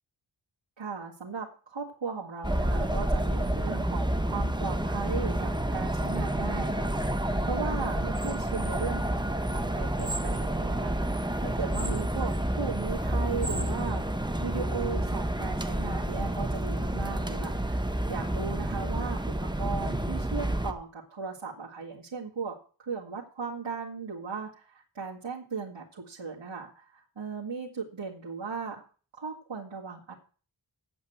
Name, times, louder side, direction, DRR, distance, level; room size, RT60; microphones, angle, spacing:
voice 1, 0.8-28.8 29.1-30.1, right 5 dB, 80° right, -5 dB, 2.0 m, -37 dB
sound 1, 2.4-20.7, right 1 dB, 10° right, 1.0 m, -29 dB
8.5 x 7.9 x 7.9 m, 0.40 s
wide cardioid pair, 70°, 46 cm